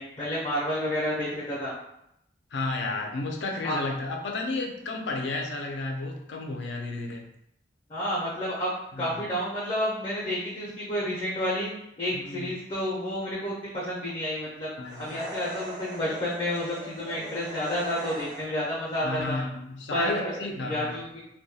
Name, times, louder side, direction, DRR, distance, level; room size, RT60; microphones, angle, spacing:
voice 1, 0.0-1.7 3.6-3.8 7.9-8.7 9.0-11.7 12.0-14.7 15.0-19.4 19.9-20.3 20.6-21.2, equal, 30° left, -7 dB, 0.5 m, -30 dB
voice 2, 2.5-7.3 8.9-9.2 12.1-12.5 14.8-15.2 19.0-21.0, left 2 dB, 80° left, 2 dB, 0.4 m, -32 dB
sound 1, 14.9-18.7, equal, 25° right, 0.4 m, -40 dB
2.2 x 2.2 x 2.7 m, 0.78 s
head